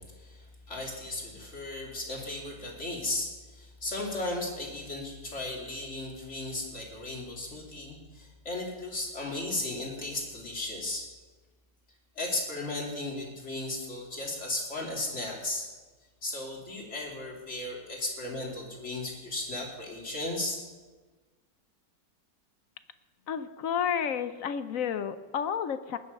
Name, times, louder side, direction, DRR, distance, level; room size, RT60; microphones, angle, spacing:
voice 1, 0.0-11.1 12.2-15.7 16.2-20.6, left 2 dB, 40° left, -2 dB, 3.4 m, -35 dB
voice 2, 23.3-26.0, left 8 dB, 60° left, 11 dB, 0.9 m, -31 dB
19.5 x 9.7 x 5.4 m, 1.3 s
omnidirectional pair, 1.9 m